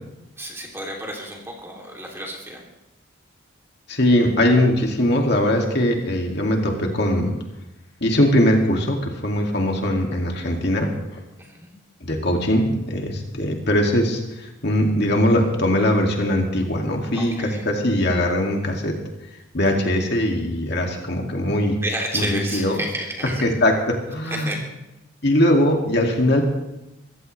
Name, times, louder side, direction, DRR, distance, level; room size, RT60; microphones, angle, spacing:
voice 1, 0.4-2.6 11.4-11.7 17.1-17.6 21.8-23.4 24.2-24.6, right 1 dB, 10° right, -1 dB, 2.9 m, -31 dB
voice 2, 3.9-7.3 8.0-10.9 12.0-18.9 19.5-21.8 22.1-22.8 23.4-24.5 25.2-26.4, left 1 dB, 50° left, 1 dB, 2.3 m, -21 dB
23.5 x 15.5 x 3.3 m, 0.96 s
head